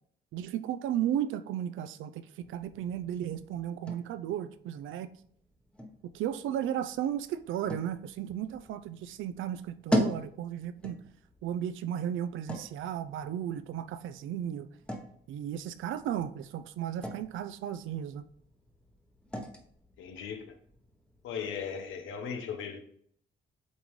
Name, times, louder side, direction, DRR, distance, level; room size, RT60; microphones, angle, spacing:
voice 1, 0.3-5.1 6.0-11.0 11.4-14.7 15.3-18.2, right 10 dB, 80° right, 0.5 m, -34 dB
sound 1, 2.4-22.0, equal, 5° left, 1.0 m, -41 dB
voice 2, 20.0-20.6 21.2-22.8, left 7 dB, 85° left, 0.9 m, -37 dB
8.1 x 3.7 x 3.2 m
cardioid pair, 90°, 20 cm